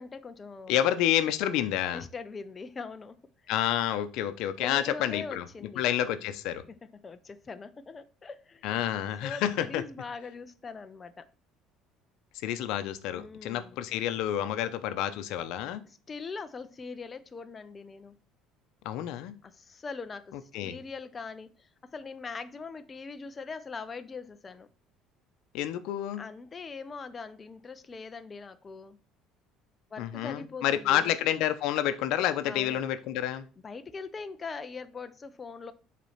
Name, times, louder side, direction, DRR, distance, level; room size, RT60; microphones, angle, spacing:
voice 1, 0.0-0.8 1.9-3.2 3.4-3.5 4.6-5.8 7.0-8.7 9.2-11.3 13.1-13.8 15.8-18.1 19.4-24.7 26.2-29.0 29.9-31.2 32.4-32.8 33.6-35.7, left 4 dB, 25° left, 0.6 m, -42 dB
voice 2, 0.7-2.0 3.5-5.4 5.8-6.6 8.6-9.8 12.4-15.8 18.8-19.3 20.5-20.8 25.5-26.2 30.0-33.4, left 11 dB, 75° left, 0.7 m, -29 dB
7.3 x 4.2 x 5.6 m
cardioid pair, 125°, 0 cm